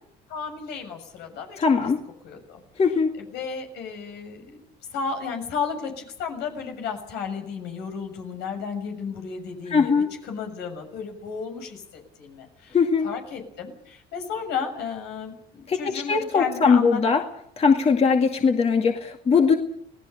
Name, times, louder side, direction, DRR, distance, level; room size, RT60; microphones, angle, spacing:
voice 1, 0.3-1.6 2.2-2.6 3.3-4.6 4.9-12.8 13.0-17.0, left 6 dB, 85° left, 4 dB, 6.8 m, -33 dB
voice 2, 1.6-2.0 2.8-3.1 9.7-10.1 12.7-13.1 15.7-17.2 17.6-19.6, left 5 dB, 35° left, 3 dB, 2.2 m, -20 dB
28.0 x 18.0 x 6.9 m, 0.69 s
cardioid pair, 110°, 17 cm